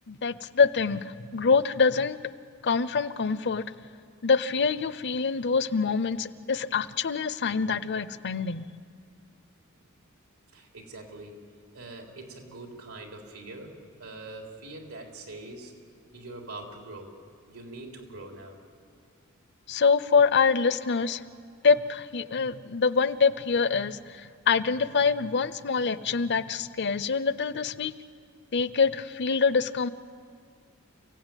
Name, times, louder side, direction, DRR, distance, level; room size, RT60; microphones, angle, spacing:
voice 1, 0.1-2.2 2.6-3.6 4.2-8.7 19.7-21.2 21.6-27.9 28.5-29.9, left 5 dB, 55° left, 15 dB, 0.7 m, -25 dB
voice 2, 10.5-11.4 11.7-15.7 16.1-17.2 17.5-18.6, right 2 dB, 90° right, 2 dB, 3.8 m, -43 dB
29.0 x 16.0 x 9.2 m, 2.2 s
head